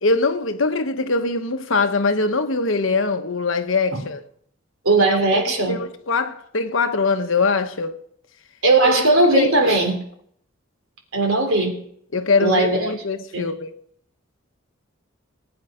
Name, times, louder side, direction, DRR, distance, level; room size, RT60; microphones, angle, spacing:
voice 1, 0.0-4.2 5.1-8.0 9.3-9.8 12.1-13.7, left 3 dB, 70° left, 1.1 m, -22 dB
voice 2, 4.8-5.7 8.6-10.0 11.1-11.8 12.4-12.9 13.3-13.5, right 2 dB, 85° right, 3.4 m, -18 dB
19.5 x 9.0 x 5.0 m
head